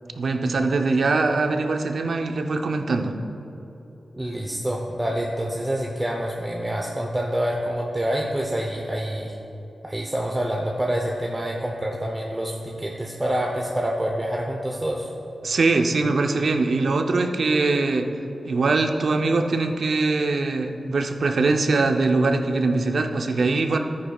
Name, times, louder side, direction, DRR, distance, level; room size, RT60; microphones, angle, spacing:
voice 1, 0.2-3.1 15.4-18.1 18.4-23.8, right 3 dB, 65° right, 5 dB, 0.6 m, -22 dB
voice 2, 4.1-9.3 9.8-15.1, right 1 dB, 15° right, -1 dB, 0.8 m, -27 dB
13.5 x 9.6 x 2.4 m, 3.0 s
wide cardioid pair, 80°, 0 cm